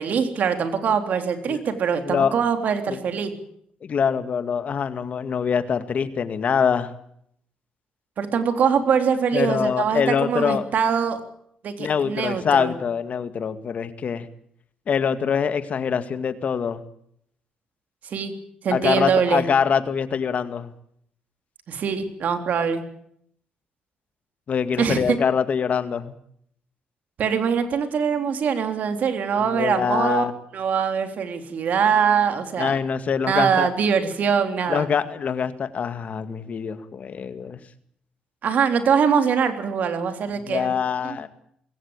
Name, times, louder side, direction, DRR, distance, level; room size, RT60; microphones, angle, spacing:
voice 1, 0.0-3.3 8.2-11.2 11.6-12.7 18.1-18.3 18.6-19.4 21.7-22.8 24.8-25.2 27.2-30.3 30.5-32.8 33.3-34.9 38.4-40.7 41.0-41.2, right 7 dB, 65° right, 7 dB, 3.6 m, -23 dB
voice 2, 3.8-6.9 9.3-10.6 11.8-14.3 14.9-16.8 18.7-20.7 24.5-26.2 29.4-30.3 32.6-33.7 34.7-37.6 40.5-41.3, left 7 dB, 55° left, 11 dB, 2.2 m, -24 dB
21.5 x 17.0 x 9.0 m, 0.69 s
cardioid pair, 85°, 3 cm